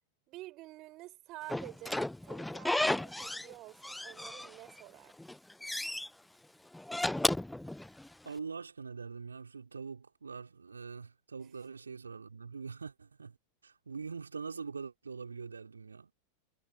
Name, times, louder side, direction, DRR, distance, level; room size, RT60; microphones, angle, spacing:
voice 1, 0.3-5.4, right 18 dB, 40° right, 5.2 m, -50 dB
Slam / Squeak, 1.5-3.5 3.8-4.8 5.2-6.1 6.7-8.3, left 1 dB, 5° left, 0.8 m, -34 dB
voice 2, 8.2-13.4 13.6-16.1, right 5 dB, 75° right, 3.7 m, -43 dB
figure-of-eight pair, 90°, 0 cm